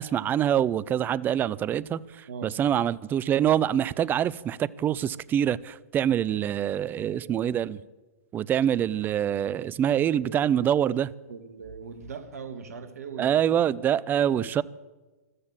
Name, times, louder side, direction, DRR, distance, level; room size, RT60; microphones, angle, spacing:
voice 1, 0.0-2.0 2.4-7.8 8.3-11.1 13.2-14.6, right 10 dB, 25° right, 0.5 m, -25 dB
voice 2, 6.9-7.6 10.3-10.4 11.3-13.3, right 5 dB, 70° right, 1.9 m, -40 dB
14.5 x 13.0 x 7.5 m
figure-of-eight pair, 110°, 8 cm